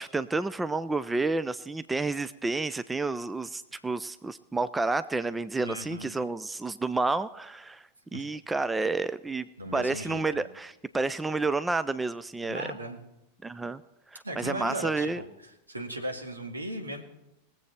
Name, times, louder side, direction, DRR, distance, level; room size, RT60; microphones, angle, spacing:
voice 1, 0.0-12.7 13.4-13.8 14.1-15.2, right 3 dB, 10° right, 14 dB, 0.4 m, -30 dB
voice 2, 5.6-6.1 8.1-8.3 9.6-10.4 12.4-13.0 14.2-17.0, right 1 dB, 80° right, 3 dB, 1.8 m, -37 dB
20.5 x 7.7 x 4.4 m, 0.89 s
figure-of-eight pair, 90°, 0 cm